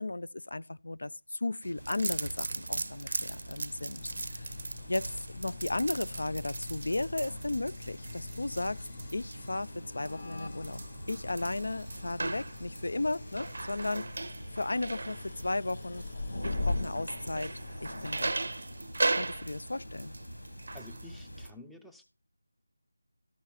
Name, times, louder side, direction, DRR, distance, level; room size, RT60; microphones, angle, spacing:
voice 1, 0.0-4.0 4.3-4.5 4.9-8.9 9.1-10.8 11.1-14.1 14.5-16.1 16.4-17.5 17.8-18.3 19.2-20.1, left 2 dB, 70° left, 0.4 m, -35 dB
sound 1, 1.6-21.5, right 3 dB, 55° right, 0.5 m, -39 dB
sound 2, 1.8-21.5, left 1 dB, 90° left, 3.3 m, -43 dB
sound 3, 3.9-18.3, left 4 dB, 30° left, 0.8 m, -48 dB
voice 2, 20.7-22.0, left 2 dB, ahead, 0.5 m, -50 dB
13.0 x 5.4 x 4.3 m
figure-of-eight pair, 170°, 0 cm